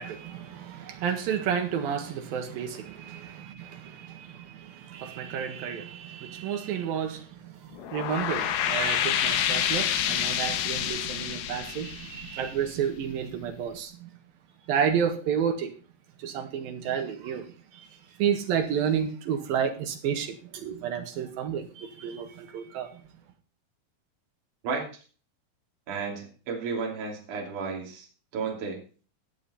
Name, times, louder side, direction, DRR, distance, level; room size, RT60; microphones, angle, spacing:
voice 1, 0.0-14.1 14.7-15.7 16.2-17.5 17.7-23.0, right 8 dB, 70° right, 3.4 m, -31 dB
sound 1, 7.7-13.0, left 10 dB, 80° left, 2.9 m, -28 dB
voice 2, 24.6-25.0 25.9-28.1 28.3-28.8, right 5 dB, 55° right, 4.3 m, -33 dB
18.0 x 7.5 x 4.2 m
omnidirectional pair, 4.4 m